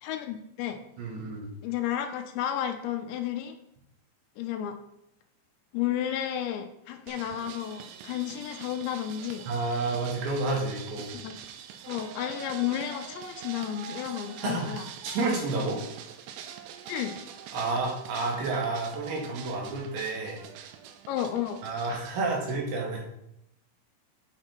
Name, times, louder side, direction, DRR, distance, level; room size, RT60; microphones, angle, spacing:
voice 1, 0.0-0.8 1.6-3.6 4.4-4.8 5.7-9.4 11.2-11.4 11.9-14.9 16.9-17.2 21.1-21.6, left 10 dB, 80° left, 6 dB, 2.8 m, -32 dB
voice 2, 1.0-1.5 9.5-11.1 14.4-14.7 15.0-15.8 17.5-20.4 21.6-23.0, right 3 dB, 70° right, -2 dB, 4.1 m, -30 dB
sound 1, 7.1-22.6, right 8 dB, 90° right, 3.1 m, -44 dB
8.8 x 5.8 x 4.5 m, 0.79 s
omnidirectional pair, 5.4 m